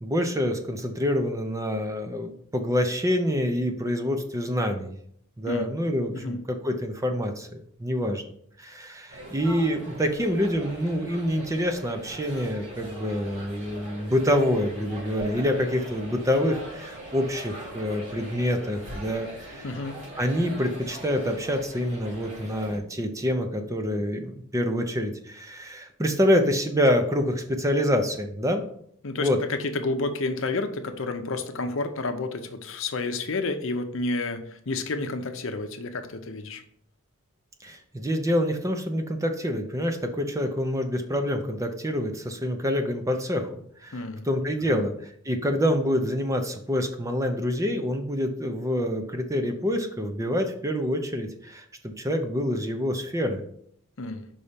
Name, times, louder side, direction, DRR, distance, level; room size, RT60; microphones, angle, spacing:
voice 1, 0.0-4.9 5.4-8.2 8.6-19.7 20.2-28.6 29.2-29.4 37.6-53.4, equal, 15° right, 6 dB, 0.6 m, -26 dB
sound 1, 9.1-22.8, right 1 dB, 60° right, 2.9 m, -41 dB
voice 2, 19.6-20.0 29.0-36.6 43.9-44.3 44.7-44.8 54.0-54.3, left 3 dB, 65° left, 7 dB, 0.7 m, -30 dB
5.5 x 4.2 x 5.1 m, 0.65 s
head